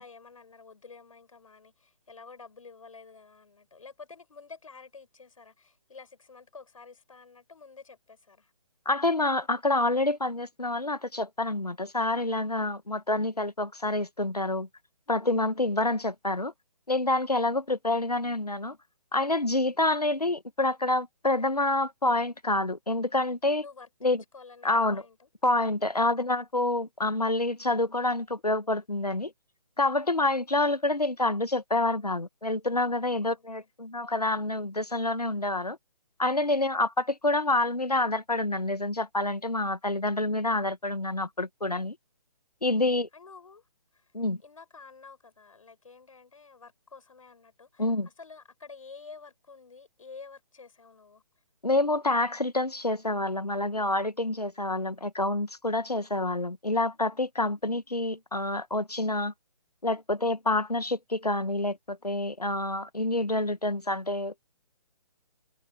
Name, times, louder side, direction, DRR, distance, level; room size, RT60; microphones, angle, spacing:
voice 1, 0.0-8.5 23.6-25.3 26.2-26.3 33.2-33.7 36.5-36.7 42.7-42.8 43.1-43.7 43.9-44.1 44.4-51.2, left 4 dB, 60° left, 6.0 m, -50 dB
voice 2, 8.8-14.7 15.1-16.5 16.9-18.8 19.1-23.6 24.0-24.2 24.6-25.0 25.4-29.3 29.8-35.8 36.2-41.9 42.6-43.1 44.1-44.4 47.8-48.1 51.6-59.3 59.8-64.4, left 2 dB, 90° left, 1.7 m, -27 dB
figure-of-eight pair, 145°, 19 cm